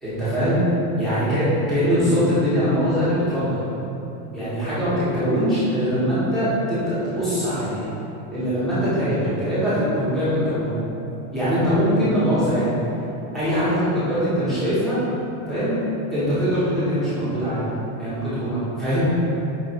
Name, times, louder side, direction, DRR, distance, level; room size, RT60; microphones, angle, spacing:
voice 1, 0.0-0.6 1.0-3.7 4.3-7.9 8.3-10.8 11.3-12.8 13.3-15.0 15.5-15.7 16.1-17.6 18.0-19.1, equal, ahead, -14 dB, 0.6 m, -22 dB
5.0 x 2.7 x 2.7 m, 3.0 s
supercardioid pair, 165°, 44 cm